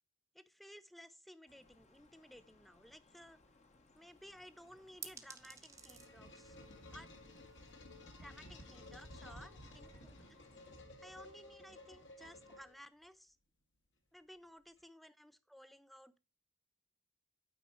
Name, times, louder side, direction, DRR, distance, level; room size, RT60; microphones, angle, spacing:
voice 1, 0.3-3.4 3.9-6.6 6.9-7.1 8.2-10.4 11.0-13.4 14.1-16.2, equal, ahead, 0.4 m, -57 dB
sound 1, 1.5-10.8, left 2 dB, 35° left, 0.9 m, -68 dB
sound 2, 4.1-9.3, right 5 dB, 15° right, 0.8 m, -57 dB
sound 3, 5.5-13.0, left 1 dB, 60° left, 1.5 m, -55 dB
9.0 x 4.5 x 4.3 m
head